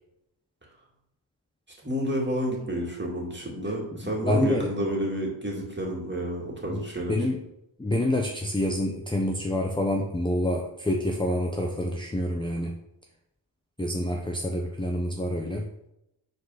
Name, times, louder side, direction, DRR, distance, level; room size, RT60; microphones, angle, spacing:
voice 1, 1.8-7.2, equal, 25° right, -2 dB, 2.2 m, -30 dB
voice 2, 4.0-4.7 6.7-6.8 7.1-7.4 7.8-12.8 13.8-15.6, left 1 dB, 10° left, 1 dB, 0.7 m, -27 dB
5.3 x 4.0 x 5.6 m, 0.85 s
wide cardioid pair, 80°, 46 cm